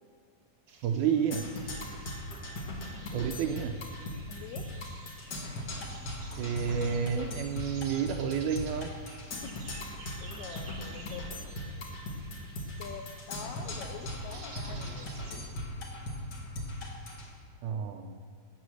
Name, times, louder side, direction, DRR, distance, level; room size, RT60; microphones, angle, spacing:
sound 1, 0.7-15.5, right 4 dB, 55° right, 1.4 m, -52 dB
voice 1, 0.8-1.5 3.1-3.8 6.4-8.9 17.6-18.2, right 7 dB, 80° right, 6 dB, 1.8 m, -30 dB
Percussion, 1.3-17.3, left 1 dB, 50° left, 1.3 m, -39 dB
voice 2, 3.0-3.3 4.3-4.7 9.4-11.4 12.8-15.1, left 8 dB, 85° left, 5 dB, 1.7 m, -46 dB
16.5 x 7.0 x 6.3 m, 2.1 s
omnidirectional pair, 3.9 m